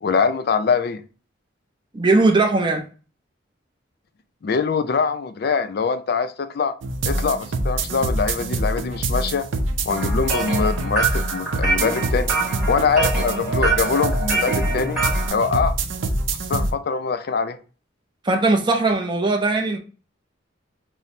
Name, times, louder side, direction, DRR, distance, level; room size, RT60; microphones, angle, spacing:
voice 1, 0.0-1.0 4.4-6.7 7.0-9.5 9.9-12.3 12.7-15.0 15.3-15.7 16.5-17.6, left 5 dB, 55° left, 0.4 m, -23 dB
voice 2, 1.9-2.8 18.2-19.8, right 3 dB, 25° right, 0.5 m, -19 dB
sound 1, 6.8-16.7, right 2 dB, 80° right, 0.5 m, -25 dB
sound 2, 10.0-15.3, right 3 dB, 5° right, 1.0 m, -25 dB
5.7 x 2.0 x 2.6 m
head